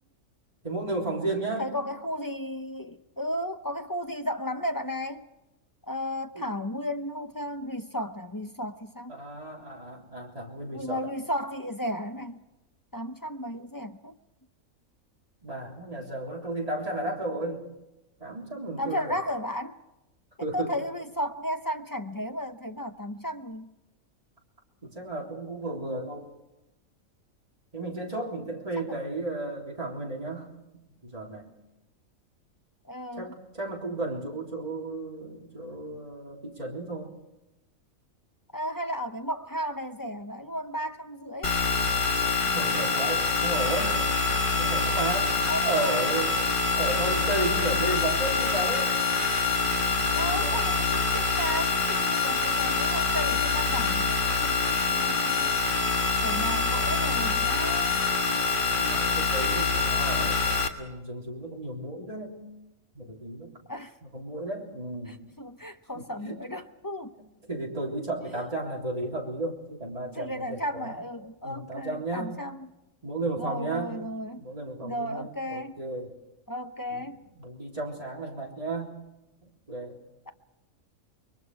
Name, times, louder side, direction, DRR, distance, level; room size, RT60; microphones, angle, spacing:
voice 1, 0.6-1.8 6.3-6.5 9.1-11.1 15.4-17.6 18.2-19.2 20.4-20.8 24.8-26.3 27.7-30.5 31.0-31.5 33.2-37.1 42.5-44.1 44.6-46.4 46.8-48.9 50.1-50.6 58.8-62.4 62.9-63.5 64.0-65.2 65.9-66.4 67.2-71.0 71.4-72.4 73.0-73.9 74.3-76.1 76.9-77.1 77.4-79.0 79.7-80.0, right 2 dB, 25° right, 3.6 m, -34 dB
voice 2, 1.6-5.3 5.9-9.2 10.7-12.5 12.9-14.2 18.8-19.8 20.4-23.7 32.8-33.3 38.5-41.6 45.5-46.0 50.1-55.6 56.2-58.0 63.7-63.9 65.1-67.1 68.3-68.4 70.1-72.7 73.4-74.5 74.8-75.8 76.5-77.2, equal, 20° left, 0.5 m, -34 dB
sound 1, 41.4-60.7, left 4 dB, 35° left, 1.7 m, -25 dB
28.5 x 22.5 x 4.8 m
omnidirectional pair, 1.5 m